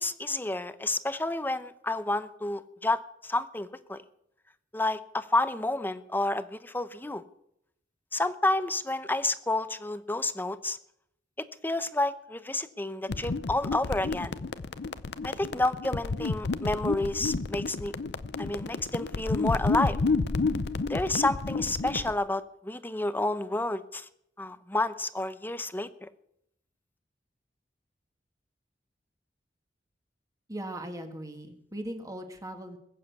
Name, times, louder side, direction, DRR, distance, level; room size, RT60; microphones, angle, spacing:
voice 1, 0.0-4.0 4.7-7.2 8.1-10.8 11.6-14.4 15.2-17.9 18.4-20.0 20.9-24.1 24.4-26.1, left 2 dB, 10° left, 13 dB, 0.7 m, -30 dB
sound 1, 13.1-22.1, left 3 dB, 70° left, 0.6 m, -30 dB
voice 2, 30.5-32.8, right 1 dB, 20° right, 5 dB, 1.9 m, -39 dB
21.0 x 7.5 x 8.2 m, 0.76 s
head